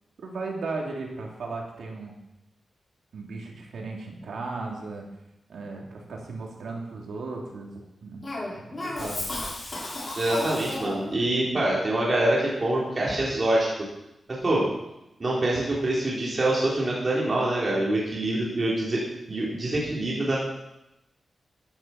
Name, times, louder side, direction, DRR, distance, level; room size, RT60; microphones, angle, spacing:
voice 1, 0.2-2.2 3.1-5.1 5.5-8.2 8.5-9.2, right 3 dB, 90° right, -1 dB, 3.2 m, -36 dB
Cough, 8.2-11.2, left 1 dB, 30° left, 5.0 m, -33 dB
voice 2, 10.2-13.7 14.3-14.7 15.2-19.0 19.3-20.4, right 1 dB, 30° right, -5 dB, 3.7 m, -25 dB
15.5 x 10.5 x 6.0 m, 0.90 s
wide cardioid pair, 165°, 0 cm